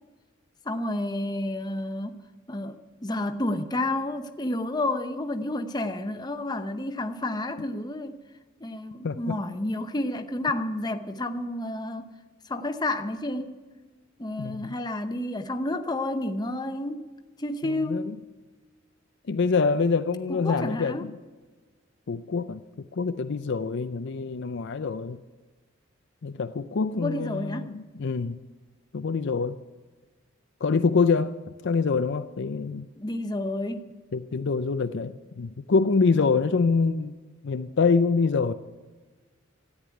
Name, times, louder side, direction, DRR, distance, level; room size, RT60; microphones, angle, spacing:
voice 1, 0.6-8.2 8.6-12.1 12.5-13.6 14.2-17.1 17.4-18.2 20.3-21.1 26.9-27.8 33.0-33.9, left 1 dB, 20° left, 0.8 m, -30 dB
voice 2, 9.0-9.4 14.4-14.7 17.6-18.0 19.3-21.1 22.1-22.6 22.9-25.2 26.2-28.4 28.9-29.6 30.6-31.4 31.6-32.9 34.1-37.1 37.4-38.5, left 4 dB, 55° left, 0.5 m, -25 dB
13.5 x 9.6 x 9.4 m
head